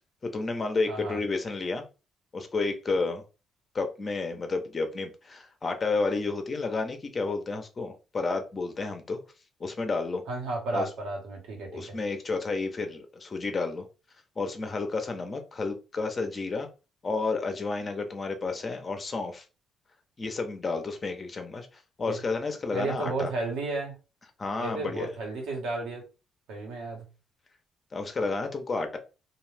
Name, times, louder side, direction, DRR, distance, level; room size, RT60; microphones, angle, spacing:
voice 1, 0.2-1.8 2.3-3.2 3.7-9.2 9.6-10.2 10.7-10.9 11.7-13.8 14.4-16.7 17.0-19.4 20.2-21.7 22.0-23.3 24.4-25.1 27.9-29.0, left 3 dB, 35° left, 0.7 m, -31 dB
voice 2, 0.9-1.2 10.3-12.0 22.1-22.2 22.7-23.9 24.6-26.0 26.5-27.0, right 2 dB, 85° right, 1.2 m, -33 dB
2.5 x 2.4 x 3.3 m
cardioid pair, 90°, 0 cm